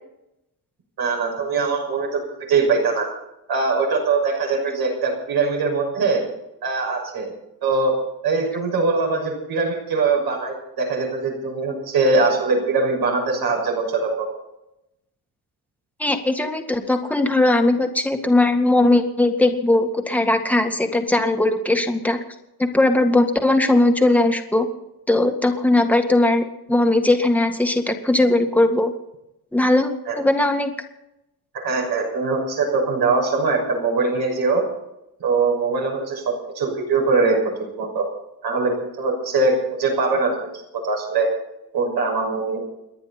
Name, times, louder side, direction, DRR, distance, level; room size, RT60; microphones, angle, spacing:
voice 1, 1.0-2.2 2.5-3.1 3.5-6.2 6.6-7.3 7.6-7.9 8.2-14.3 30.1-30.2 31.6-34.6 35.2-37.4 37.8-38.1 38.4-40.5 40.8-41.3 41.7-42.6, right 4 dB, 75° right, 0 dB, 6.4 m, -22 dB
voice 2, 16.0-22.2 22.6-24.7 25.1-28.9 29.5-30.7, left 2 dB, 5° left, 4 dB, 1.9 m, -19 dB
30.0 x 10.5 x 4.3 m, 0.88 s
cardioid pair, 140°, 38 cm